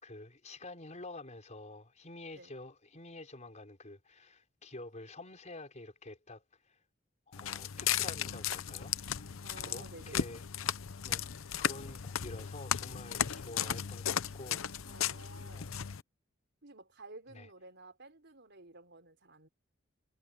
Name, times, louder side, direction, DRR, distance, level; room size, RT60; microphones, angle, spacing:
voice 1, 0.0-6.8 7.3-10.4 11.0-14.6 15.5-15.8 17.3-17.5, left 2 dB, 35° left, 4.6 m, -49 dB
Walk footsteps, 7.3-16.0, left 9 dB, 85° left, 0.8 m, -36 dB
voice 2, 9.4-10.2 14.9-15.7 16.6-19.5, right 2 dB, 60° right, 4.9 m, -53 dB
head